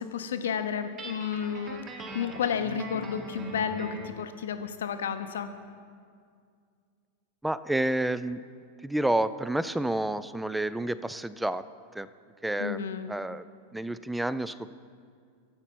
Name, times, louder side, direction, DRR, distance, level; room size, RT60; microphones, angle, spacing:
voice 1, 0.0-5.5 12.6-13.1, left 7 dB, 65° left, 9 dB, 0.7 m, -32 dB
Guitar, 1.0-4.2, right 2 dB, 25° right, 1.0 m, -41 dB
voice 2, 7.4-8.4 8.8-11.6 11.9-12.1 12.4-12.8 13.1-13.5 13.7-14.7, right 1 dB, 5° right, 15 dB, 0.3 m, -29 dB
13.5 x 7.8 x 4.4 m, 2.2 s
figure-of-eight pair, 90°, 0 cm